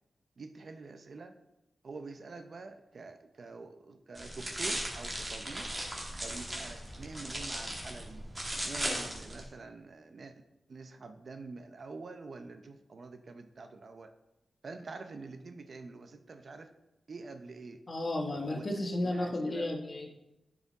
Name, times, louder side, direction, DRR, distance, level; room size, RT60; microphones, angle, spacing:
voice 1, 0.4-1.3 1.8-5.7 6.2-8.2 8.6-10.4 10.7-14.1 14.6-16.7 17.1-17.8 18.3-18.7 19.0-19.7, right 3 dB, 60° right, 8 dB, 0.6 m, -46 dB
sound 1, 4.1-9.4, right 1 dB, 20° right, 1.9 m, -37 dB
voice 2, 17.9-20.1, left 1 dB, 45° left, 2 dB, 1.2 m, -33 dB
9.4 x 4.9 x 4.0 m, 0.96 s
cardioid pair, 75°, 0 cm